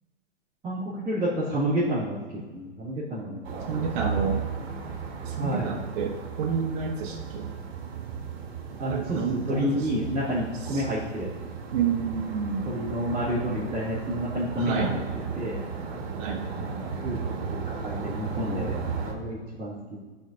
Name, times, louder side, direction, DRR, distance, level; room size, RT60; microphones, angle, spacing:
voice 1, 0.6-2.2 2.5-4.2 5.4-5.7 8.8-11.3 12.6-15.0 15.4-15.6 16.6-17.2 17.5-20.0, equal, 15° right, -14 dB, 1.9 m, -30 dB
sound 1, 3.4-19.1, right 6 dB, 60° right, 1.3 m, -35 dB
voice 2, 3.7-4.4 5.3-7.5 8.9-9.9 10.7-10.8 11.7-12.7 14.6-15.0 16.2-16.5, right 6 dB, 45° right, 0 dB, 0.8 m, -29 dB
11.5 x 4.4 x 2.6 m, 1.3 s
hypercardioid pair, 145°, 36 cm